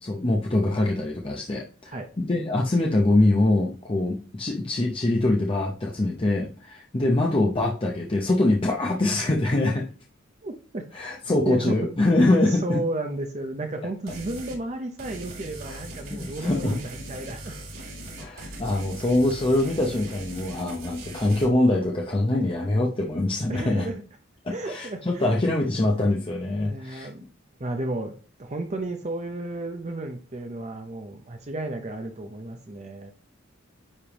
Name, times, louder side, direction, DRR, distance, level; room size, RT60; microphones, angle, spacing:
voice 1, 0.0-9.9 10.9-12.8 15.7-15.8 16.1-16.8 18.2-23.9 24.4-27.1, left 2 dB, 25° left, -1 dB, 0.7 m, -24 dB
voice 2, 10.4-10.9 11.5-11.9 12.5-17.6 18.3-18.6 23.5-24.0 24.5-25.3 26.6-27.2 27.6-28.1 28.4-33.1, right 2 dB, 35° right, 5 dB, 0.7 m, -33 dB
sound 1, 14.1-14.6 15.0-21.5, right 1 dB, 85° right, 3.2 m, -40 dB
9.8 x 3.4 x 2.9 m, 0.39 s
head